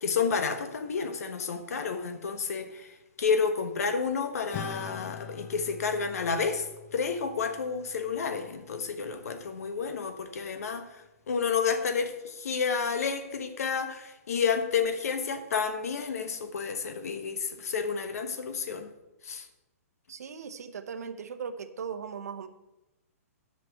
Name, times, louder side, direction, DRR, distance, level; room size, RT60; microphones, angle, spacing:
voice 1, 0.0-2.9 3.2-6.7 6.9-10.9 11.3-18.9 19.2-19.5, left 5 dB, 70° left, 8 dB, 1.3 m, -30 dB
Acoustic guitar / Strum, 4.5-9.3, left 7 dB, 20° left, 0.6 m, -44 dB
voice 2, 20.1-22.5, right 6 dB, 80° right, 9 dB, 0.9 m, -38 dB
7.8 x 5.9 x 7.6 m, 1.0 s
hypercardioid pair, 170°, 8 cm